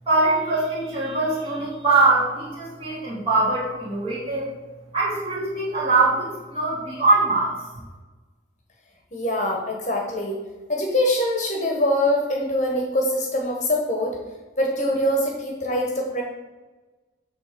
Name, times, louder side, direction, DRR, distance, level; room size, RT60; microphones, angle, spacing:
voice 1, 0.1-4.5 4.9-7.6, right 3 dB, 30° right, -7 dB, 2.5 m, -22 dB
voice 2, 9.1-10.4 10.7-14.2 14.6-16.2, left 1 dB, 40° left, 0 dB, 1.2 m, -23 dB
7.5 x 3.3 x 6.0 m, 1.2 s
head